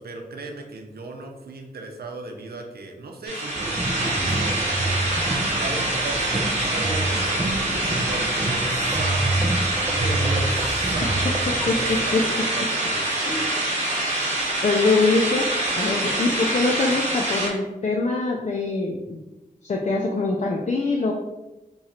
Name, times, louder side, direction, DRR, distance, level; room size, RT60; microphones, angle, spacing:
voice 1, 0.0-4.9 5.3-13.6, right 2 dB, 85° right, 3 dB, 0.6 m, -37 dB
sound 1, 3.3-17.5, right 1 dB, 45° right, 1.0 m, -25 dB
sound 2, 3.5-12.0, right 2 dB, 15° right, 0.4 m, -28 dB
voice 2, 11.7-12.2 13.3-13.6 14.6-15.5 15.8-19.2 19.6-21.1, left 3 dB, 50° left, 0 dB, 0.4 m, -23 dB
3.1 x 2.4 x 4.1 m, 1.0 s
cardioid pair, 55°, 16 cm